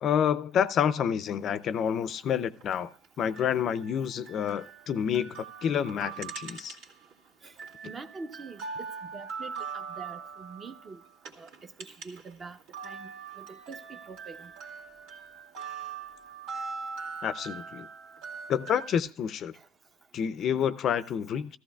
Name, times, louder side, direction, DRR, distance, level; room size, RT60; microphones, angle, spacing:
voice 1, 0.0-2.9 3.2-6.8 17.2-17.9 18.5-19.5 20.1-21.6, left 8 dB, 45° left, 0.5 m, -28 dB
sound 1, 2.6-7.1 7.5-12.3 12.6-19.0, right 5 dB, 75° right, 2.3 m, -42 dB
voice 2, 7.8-8.6 9.1-11.0 11.4-12.6 12.8-13.1 13.4-14.5, right 4 dB, 30° right, 0.8 m, -44 dB
14.5 x 14.0 x 2.3 m
cardioid pair, 125°, 0 cm